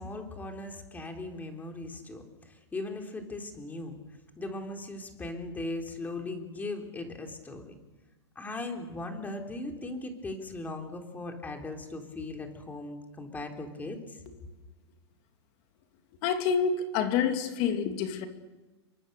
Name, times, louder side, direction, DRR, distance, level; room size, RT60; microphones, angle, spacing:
voice 1, 0.0-7.7 8.3-14.2, left 2 dB, 10° left, 4 dB, 3.5 m, -38 dB
voice 2, 16.2-18.3, left 7 dB, 40° left, 6 dB, 2.7 m, -27 dB
28.5 x 23.0 x 6.8 m, 1.2 s
hypercardioid pair, 135°, 15 cm